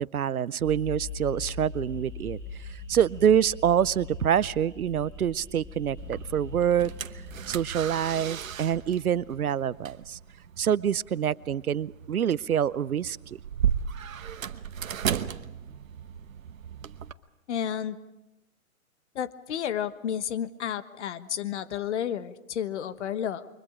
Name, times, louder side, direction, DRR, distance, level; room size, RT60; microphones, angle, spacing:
voice 1, 0.0-2.4 2.9-6.9 7.5-10.2 10.6-13.2, right 9 dB, 90° right, 21 dB, 0.7 m, -26 dB
sound 1, 0.6-9.9, left 4 dB, 10° left, 7.2 m, -42 dB
sound 2, 6.0-17.1, right 8 dB, 70° right, 1.1 m, -35 dB
voice 2, 17.5-18.0 19.1-23.5, left 9 dB, 55° left, 13 dB, 1.3 m, -31 dB
29.0 x 23.5 x 5.0 m, 0.97 s
hypercardioid pair, 135°, 42 cm